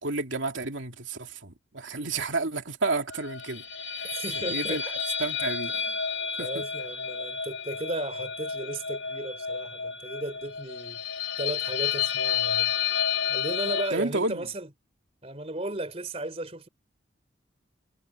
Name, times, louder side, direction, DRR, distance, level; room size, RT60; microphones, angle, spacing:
voice 1, 0.0-3.6 4.0-4.2 4.5-4.8 5.2-5.7 6.4-6.6 13.9-14.4, right 3 dB, 80° right, 2.8 m, -31 dB
sound 1, 3.1-13.9, left 7 dB, 85° left, 4.0 m, -31 dB
voice 2, 4.1-4.8 5.7-6.0 6.4-12.7 13.3-14.7 15.2-16.7, right 1 dB, 30° right, 3.7 m, -35 dB
head